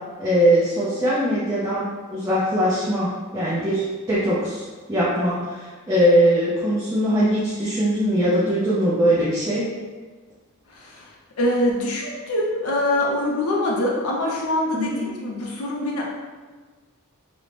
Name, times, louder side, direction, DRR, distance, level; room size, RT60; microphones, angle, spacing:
voice 1, 0.2-4.6 4.9-9.6 14.7-15.0, equal, 15° right, -9 dB, 0.4 m, -21 dB
voice 2, 10.7-11.1 11.4-16.0, left 1 dB, 75° left, -2 dB, 0.6 m, -24 dB
2.6 x 2.1 x 3.1 m, 1.4 s
head